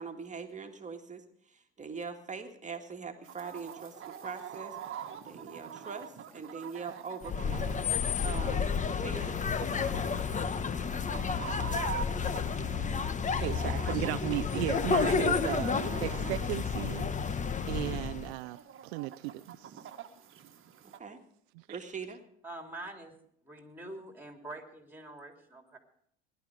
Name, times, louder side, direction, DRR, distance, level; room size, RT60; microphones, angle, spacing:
voice 1, 0.0-4.8 5.2-8.7 9.0-9.3 14.5-14.6 20.8-21.2 21.7-22.2, right 5 dB, 20° right, 5 dB, 2.1 m, -42 dB
Chicken rooster, 3.2-21.0, right 9 dB, 40° right, 1.6 m, -46 dB
sound 1, 7.2-18.3, left 5 dB, 20° left, 1.0 m, -31 dB
voice 2, 13.3-17.1 17.7-18.6 18.8-19.8 21.6-21.7, right 19 dB, 70° right, 13 dB, 0.6 m, -35 dB
voice 3, 22.4-23.2 23.4-25.8, right 2 dB, 5° right, 3 dB, 3.5 m, -45 dB
19.5 x 11.5 x 5.0 m, 0.68 s
hypercardioid pair, 80°, 33 cm